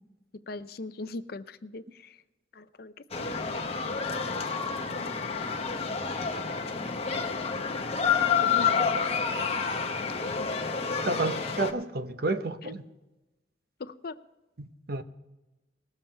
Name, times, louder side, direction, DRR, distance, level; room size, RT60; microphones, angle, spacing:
voice 1, 0.4-2.2 2.5-4.0 4.8-5.9 8.4-8.9 10.4-11.5 12.6-12.7 13.8-14.2, left 3 dB, 50° left, 0.5 m, -42 dB
sound 1, 3.1-11.7, left 6 dB, 30° left, 0.9 m, -29 dB
voice 2, 11.1-12.8 14.6-15.0, right 2 dB, 50° right, 0.8 m, -30 dB
19.5 x 7.4 x 4.4 m
head